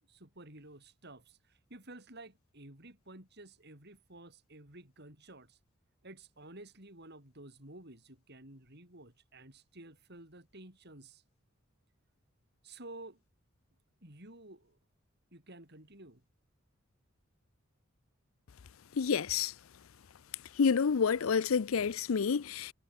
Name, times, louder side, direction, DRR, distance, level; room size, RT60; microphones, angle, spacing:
voice 1, 0.1-5.6 6.0-11.2 12.6-13.2 14.0-14.8 15.3-16.2, right 2 dB, 55° right, 7.8 m, -52 dB
voice 2, 19.0-19.5 20.6-22.7, left 6 dB, 85° left, 0.5 m, -28 dB
head